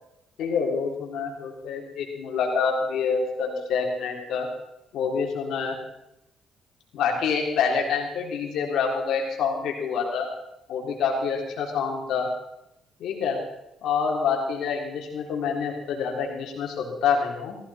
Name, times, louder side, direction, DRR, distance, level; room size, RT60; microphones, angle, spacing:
voice 1, 0.4-4.5 4.9-5.8 6.9-10.3 10.7-12.3 13.0-13.4 13.8-17.6, left 6 dB, 80° left, 0 dB, 3.7 m, -27 dB
15.5 x 15.5 x 4.3 m, 0.84 s
cardioid pair, 90°, 0 cm